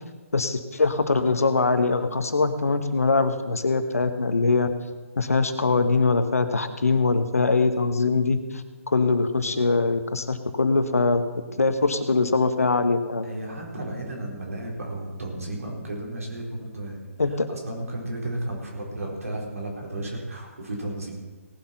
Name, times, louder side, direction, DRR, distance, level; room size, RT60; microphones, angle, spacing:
voice 1, 0.3-4.7 5.2-11.3 11.6-13.3 17.2-17.5, left 3 dB, 80° left, 9 dB, 1.3 m, -22 dB
voice 2, 13.2-21.1, right 1 dB, 80° right, -2 dB, 4.5 m, -33 dB
18.0 x 7.7 x 5.9 m, 1.3 s
figure-of-eight pair, 140°, 8 cm